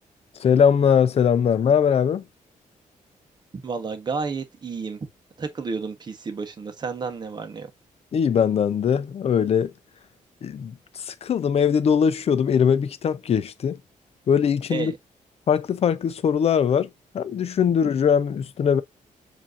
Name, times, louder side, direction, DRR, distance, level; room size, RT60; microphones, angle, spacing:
voice 1, 0.4-2.2 8.1-9.7 10.4-13.8 14.3-14.9 15.5-16.9 17.1-18.8, left 7 dB, 45° left, 0.6 m, -21 dB
voice 2, 3.6-5.0 5.4-7.7 14.7-14.9, right 4 dB, 30° right, 1.0 m, -31 dB
7.3 x 2.8 x 2.5 m
wide cardioid pair, 150°, 14 cm